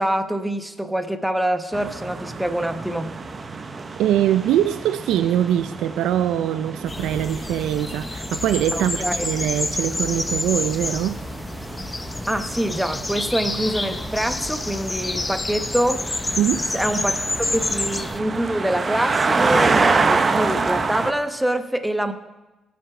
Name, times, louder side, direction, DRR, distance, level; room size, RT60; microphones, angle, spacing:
voice 1, 0.0-3.1 8.7-9.3 12.3-16.0 16.7-17.2 17.5-22.1, right 1 dB, 5° right, 8 dB, 0.9 m, -25 dB
sound 1, 1.7-21.1, right 4 dB, 35° right, 0.8 m, -28 dB
voice 2, 4.0-11.2 16.4-16.7, right 11 dB, 85° right, 11 dB, 0.4 m, -22 dB
sound 2, 6.9-18.2, left 2 dB, 20° left, 0.5 m, -28 dB
17.0 x 5.9 x 4.8 m, 1.1 s
cardioid pair, 90°, 0 cm